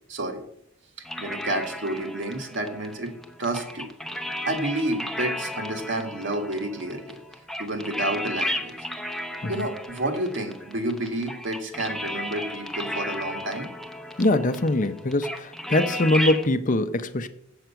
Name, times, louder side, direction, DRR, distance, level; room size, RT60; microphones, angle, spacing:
sound 1, 1.1-16.5, left 1 dB, ahead, 0.8 m, -34 dB
voice 1, 1.2-3.1 3.4-3.9 4.4-7.2 7.6-8.7 9.5-13.7, right 1 dB, 65° right, 1.8 m, -30 dB
voice 2, 14.2-17.3, left 1 dB, 40° left, 0.6 m, -23 dB
7.8 x 7.7 x 5.8 m
head